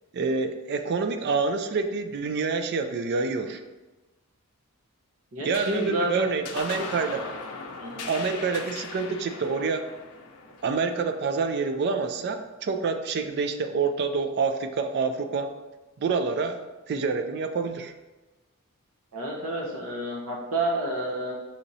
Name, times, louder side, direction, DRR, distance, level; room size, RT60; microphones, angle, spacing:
voice 1, 0.1-3.6 5.5-7.2 8.1-9.8 10.6-15.5 16.0-16.6 16.9-17.9, right 4 dB, 50° right, 7 dB, 0.3 m, -27 dB
voice 2, 5.3-6.3 7.8-8.1 19.1-21.3, right 1 dB, 75° right, -2 dB, 0.8 m, -29 dB
sound 1, 5.5-12.3, left 4 dB, 90° left, 0.5 m, -40 dB
6.1 x 2.9 x 2.6 m, 1.2 s
head